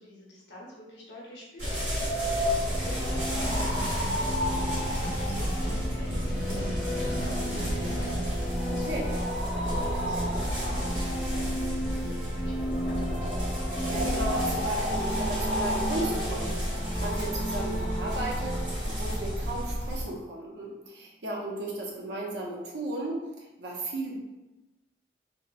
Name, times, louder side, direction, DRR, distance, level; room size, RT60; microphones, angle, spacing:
voice 1, 0.0-9.1 9.5-13.2, left 1 dB, 75° left, -4 dB, 0.8 m, -47 dB
sound 1, 1.6-20.1, equal, 50° right, 1.2 m, -30 dB
sound 2, 2.2-20.2, right 1 dB, 5° right, 0.4 m, -36 dB
sound 3, 3.1-8.2, right 1 dB, 15° left, 0.8 m, -38 dB
voice 2, 8.7-9.1 13.9-24.2, right 1 dB, 70° right, -2 dB, 0.6 m, -35 dB
2.9 x 2.0 x 2.3 m, 1.0 s
head